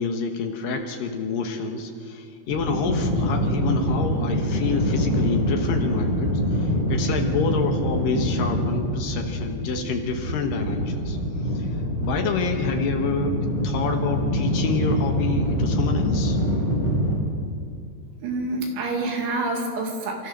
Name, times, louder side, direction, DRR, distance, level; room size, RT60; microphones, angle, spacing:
voice 1, 0.0-11.2 11.6-11.7 12.0-13.3 13.6-16.4, left 4 dB, 70° left, 4 dB, 2.3 m, -28 dB
sound 1, 2.5-17.2, equal, 25° right, 4.7 m, -25 dB
voice 2, 18.2-20.3, right 2 dB, 75° right, 1 dB, 4.6 m, -27 dB
28.5 x 13.5 x 6.6 m, 2.4 s
omnidirectional pair, 5.3 m